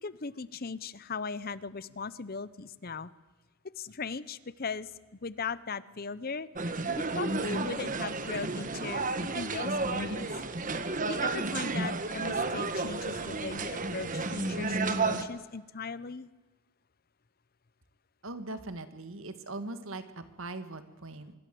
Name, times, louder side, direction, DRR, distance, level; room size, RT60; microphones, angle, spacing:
voice 1, 0.0-3.1 3.8-4.9 5.2-6.5 7.1-9.1 9.3-10.3 11.1-16.3, left 4 dB, 40° left, 17 dB, 0.8 m, -38 dB
sound 1, 6.6-15.2, right 3 dB, 35° right, 1.5 m, -32 dB
voice 2, 18.2-21.3, right 2 dB, 65° right, 10 dB, 1.9 m, -40 dB
25.0 x 22.0 x 7.8 m, 1.2 s
head